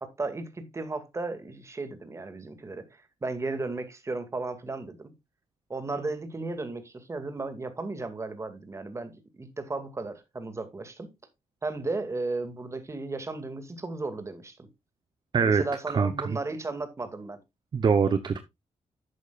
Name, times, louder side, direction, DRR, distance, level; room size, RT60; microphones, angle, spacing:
voice 1, 0.0-5.1 5.7-11.1 11.6-14.7 15.4-17.4, right 3 dB, 25° right, 2.2 m, -35 dB
voice 2, 15.3-16.4 17.7-18.4, right 5 dB, 40° right, 0.9 m, -24 dB
11.5 x 8.1 x 2.4 m
cardioid pair, 105°, 11 cm